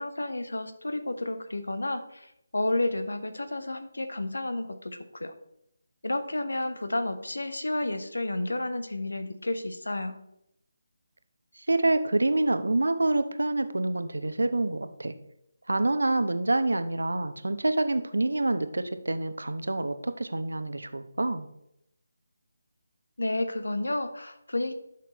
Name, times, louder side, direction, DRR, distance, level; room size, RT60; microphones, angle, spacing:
voice 1, 0.0-5.3 6.0-10.2 23.2-24.7, left 2 dB, 80° left, 9 dB, 1.0 m, -31 dB
voice 2, 11.6-15.1 15.7-21.5, right 2 dB, 80° right, 10 dB, 0.8 m, -27 dB
11.5 x 5.9 x 3.0 m, 0.80 s
figure-of-eight pair, 155°, 0 cm